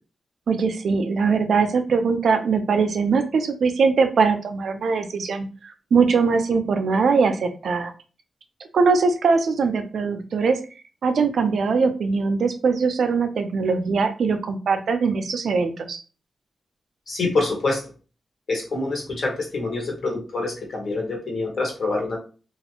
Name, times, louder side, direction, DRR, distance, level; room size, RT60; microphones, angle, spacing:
voice 1, 0.5-7.9 8.7-10.6 11.0-16.0, right 5 dB, 75° right, 7 dB, 0.5 m, -21 dB
voice 2, 17.1-17.8 18.5-22.2, left 3 dB, 65° left, -1 dB, 1.5 m, -26 dB
3.1 x 2.4 x 2.9 m, 0.34 s
cardioid pair, 90°, 0 cm